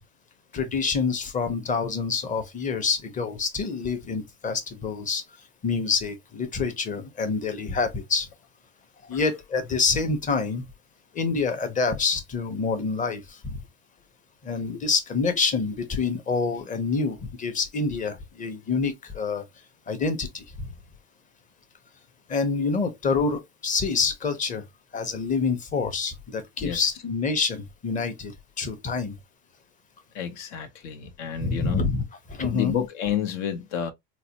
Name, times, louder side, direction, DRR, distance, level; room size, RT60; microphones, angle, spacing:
voice 1, 0.5-5.2 5.6-8.3 9.1-10.6 11.1-13.6 14.4-19.4 19.9-20.7 22.3-24.6 24.9-28.3 28.6-29.1 31.4-32.0 32.3-32.7, left 4 dB, 25° left, 0.7 m, -27 dB
voice 2, 30.1-31.8 32.5-33.9, left 8 dB, 80° left, 1.0 m, -30 dB
4.0 x 2.2 x 2.8 m
cardioid pair, 145°, 33 cm